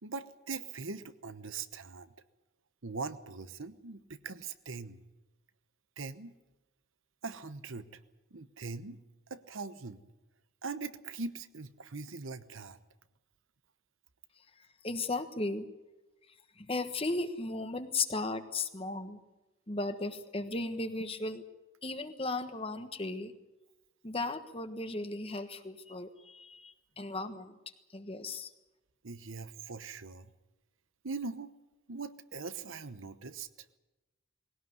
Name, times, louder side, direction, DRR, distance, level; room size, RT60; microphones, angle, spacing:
voice 1, 0.0-2.1 2.8-5.0 6.0-6.3 7.2-8.0 8.3-9.0 9.3-10.0 10.6-12.8 29.0-30.3 31.0-31.5 31.9-33.5, right 4 dB, 70° right, 12 dB, 1.0 m, -41 dB
voice 2, 14.8-15.7 16.6-19.2 19.7-21.4 21.8-23.3 24.0-27.5 27.9-28.5, left 3 dB, 25° left, 9 dB, 1.3 m, -36 dB
20.0 x 17.5 x 9.5 m, 1.1 s
head